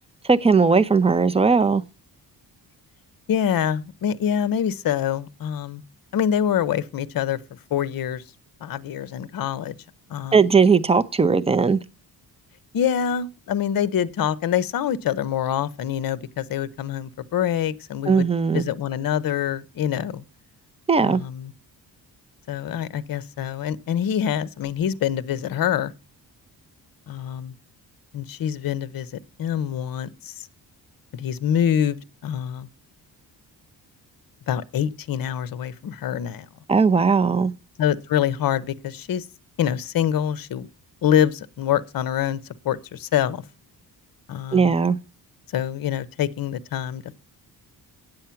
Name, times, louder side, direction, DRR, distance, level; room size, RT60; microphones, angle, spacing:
voice 1, 0.3-1.8 10.3-11.8 18.1-18.6 20.9-21.2 36.7-37.5 44.5-45.0, right 5 dB, 15° right, 0.6 m, -18 dB
voice 2, 3.3-5.8 6.1-7.4 7.7-8.2 8.6-9.8 10.1-10.4 12.7-18.3 18.5-20.2 21.0-21.5 22.5-25.9 27.1-27.5 28.1-30.5 31.1-32.7 34.5-36.5 37.8-39.3 39.6-40.7 41.0-42.4 42.6-43.4 44.3-44.7 45.5-47.1, left 9 dB, 55° left, 0.8 m, -25 dB
8.9 x 7.7 x 5.7 m
cardioid pair, 110°, 40 cm